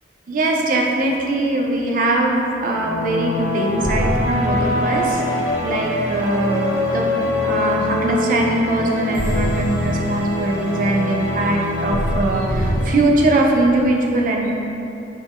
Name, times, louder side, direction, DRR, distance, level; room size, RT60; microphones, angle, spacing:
voice 1, 0.3-7.1 7.4-14.5, right 2 dB, 45° right, 0 dB, 0.4 m, -21 dB
sound 1, 2.7-13.0, left 1 dB, 85° left, 0.7 m, -23 dB
4.0 x 3.6 x 2.4 m, 2.9 s
head